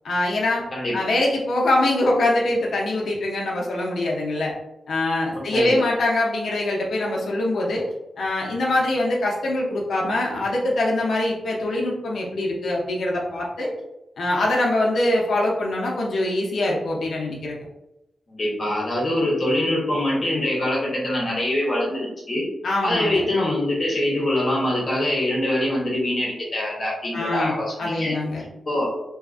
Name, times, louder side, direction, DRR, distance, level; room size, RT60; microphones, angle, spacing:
voice 1, 0.0-0.6 0.9-4.5 4.9-7.9 8.2-13.7 14.2-17.6 22.6-23.2 27.1-28.4, left 1 dB, 75° left, -3 dB, 0.5 m, -23 dB
voice 2, 5.4-5.8 18.3-22.4 22.8-28.2 28.7-28.9, left 1 dB, 40° left, -4 dB, 0.9 m, -24 dB
2.7 x 2.4 x 2.4 m, 0.91 s
wide cardioid pair, 115°, 0 cm